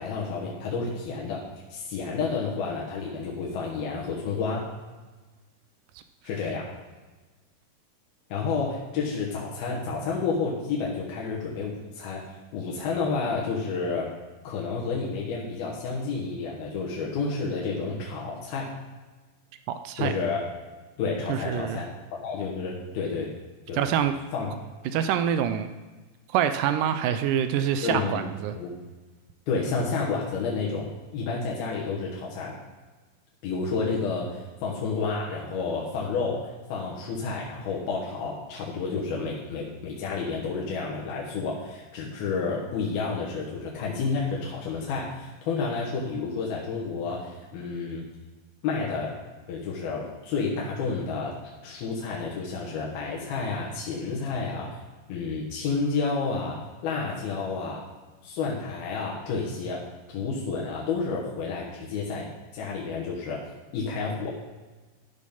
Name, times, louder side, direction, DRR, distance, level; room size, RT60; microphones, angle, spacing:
voice 1, 0.0-1.4 1.7-4.7 6.2-6.7 8.3-12.2 12.5-14.1 14.4-18.7 20.0-20.4 21.0-23.3 23.7-23.9 24.3-24.5 27.8-28.3 28.6-28.7 29.5-32.5 33.4-48.0 48.6-49.1 49.5-51.4 51.6-54.8 55.1-57.8 58.2-62.2 62.5-63.4 63.7-64.3, left 4 dB, 85° left, -3 dB, 3.2 m, -30 dB
voice 2, 19.7-20.1 21.3-21.8 23.7-24.1 24.9-25.7 26.3-28.6, right 9 dB, 80° right, 9 dB, 1.9 m, -25 dB
13.0 x 5.2 x 5.5 m, 1.2 s
omnidirectional pair, 4.2 m